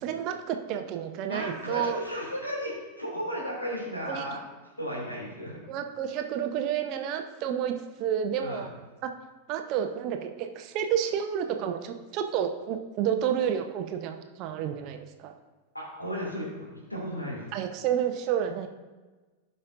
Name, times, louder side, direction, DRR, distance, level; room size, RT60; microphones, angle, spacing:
voice 1, 0.0-2.0 4.1-4.2 5.7-8.7 9.0-9.1 9.5-15.3 17.5-18.7, right 9 dB, 40° right, 6 dB, 0.8 m, -30 dB
voice 2, 1.3-4.4 4.8-5.6 8.4-8.6 15.7-17.5, equal, 85° left, -3 dB, 2.5 m, -34 dB
16.0 x 5.5 x 2.6 m, 1.3 s
figure-of-eight pair, 90°, 0 cm